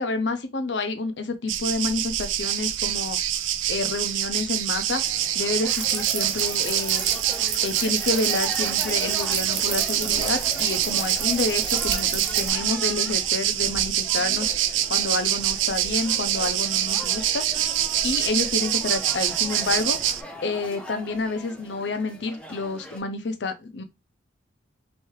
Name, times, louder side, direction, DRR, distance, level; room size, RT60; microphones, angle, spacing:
voice 1, 0.0-3.2 3.7-7.1 7.6-17.4 18.0-20.0 20.4-23.8, left 3 dB, 65° left, 0.6 m, -29 dB
sound 1, 1.5-20.2, right 11 dB, 80° right, 0.4 m, -25 dB
sound 2, 5.0-23.0, equal, 5° left, 0.5 m, -40 dB
sound 3, 5.7-12.5, right 6 dB, 60° right, 0.9 m, -33 dB
3.3 x 3.2 x 3.1 m
head